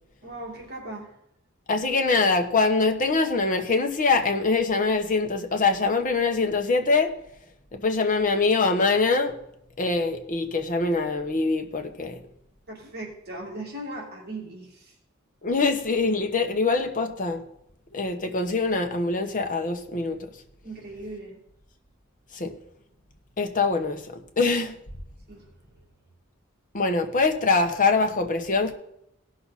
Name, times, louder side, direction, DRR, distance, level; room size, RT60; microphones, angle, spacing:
voice 1, 0.2-1.1 12.7-14.9 20.6-21.4 25.3-25.5 25.7-25.8, right 1 dB, 50° right, 2.5 m, -38 dB
voice 2, 1.7-7.1 7.7-9.4 9.8-12.2 15.4-17.4 17.9-20.3 22.3-22.5 23.4-24.1 24.4-24.8 26.7-28.7, left 3 dB, 40° left, 1.2 m, -23 dB
17.0 x 6.2 x 4.2 m
head